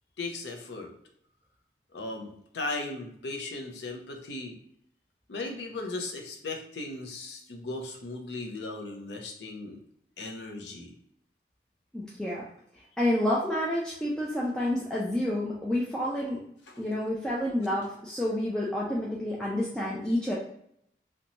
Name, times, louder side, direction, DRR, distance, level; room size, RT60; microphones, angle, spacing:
voice 1, 0.2-0.9 1.9-4.6 5.3-9.8 10.2-10.9, left 2 dB, 80° left, 2 dB, 0.5 m, -37 dB
voice 2, 11.9-12.4 13.0-16.4 16.8-20.3, left 1 dB, 5° left, -6 dB, 0.3 m, -29 dB
2.6 x 2.2 x 2.9 m, 0.71 s
head